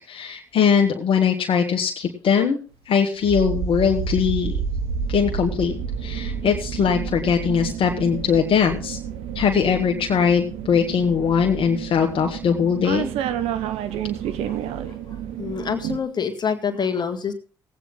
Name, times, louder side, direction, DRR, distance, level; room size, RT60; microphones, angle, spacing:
voice 1, 0.1-2.6 2.9-4.6 5.1-5.7 6.0-9.0 9.3-13.1, left 7 dB, 60° left, 2 dB, 1.3 m, -21 dB
sound 1, 3.2-16.0, right 7 dB, 75° right, 1.0 m, -30 dB
voice 2, 15.1-17.3, left 6 dB, 45° left, 7 dB, 1.8 m, -26 dB
17.5 x 8.7 x 3.7 m, 0.36 s
hypercardioid pair, 50°, 10 cm